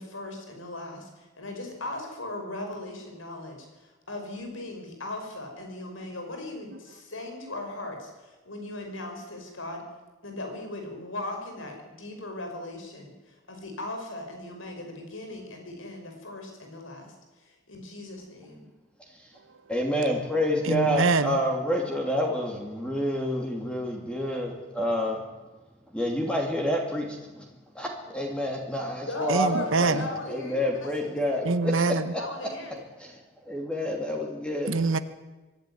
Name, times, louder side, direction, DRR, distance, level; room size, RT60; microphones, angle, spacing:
voice 1, 0.0-10.0 10.2-18.7 29.0-31.1 31.8-31.9 32.2-32.8, left 2 dB, 75° left, 5.6 m, -38 dB
voice 2, 19.0-19.3 19.7-25.2 25.9-27.5 27.7-32.2 33.0-34.7, equal, 5° left, 2.8 m, -29 dB
voice 3, 20.6-21.4 29.3-30.1 31.4-32.1 34.7-35.0, right 3 dB, 75° right, 1.0 m, -24 dB
24.0 x 12.0 x 9.6 m
head